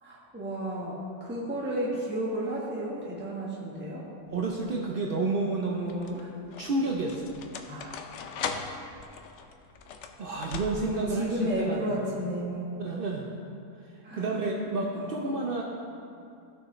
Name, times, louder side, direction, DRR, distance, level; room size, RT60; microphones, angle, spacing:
voice 1, 0.0-4.1 5.9-6.3 7.7-8.1 10.9-12.7 14.0-14.3 14.9-15.1, equal, 5° right, -6 dB, 1.3 m, -33 dB
sound 1, 4.3-4.8 5.7-11.2, left 6 dB, 65° left, 0.7 m, -39 dB
voice 2, 4.3-6.3 6.6-7.3 10.2-12.1 12.8-13.3 13.8-15.6, right 3 dB, 60° right, -1 dB, 0.5 m, -30 dB
15.0 x 6.2 x 3.2 m, 2.5 s
omnidirectional pair, 1.7 m